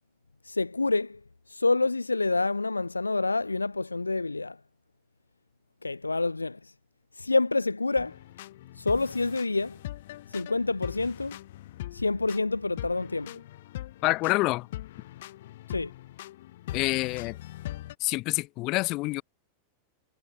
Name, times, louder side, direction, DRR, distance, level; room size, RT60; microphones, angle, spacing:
voice 1, 0.5-1.2 1.5-4.6 5.8-6.6 7.2-8.2 8.8-9.8 10.3-11.4 11.9-13.4 15.7-15.9, left 3 dB, 80° left, 1.9 m, -27 dB
sound 1, 8.0-17.9, left 15 dB, 55° left, 3.4 m, -42 dB
voice 2, 14.0-14.7 16.7-17.4 18.0-19.2, left 22 dB, 40° left, 5.9 m, -27 dB
figure-of-eight pair, 90°, 0 cm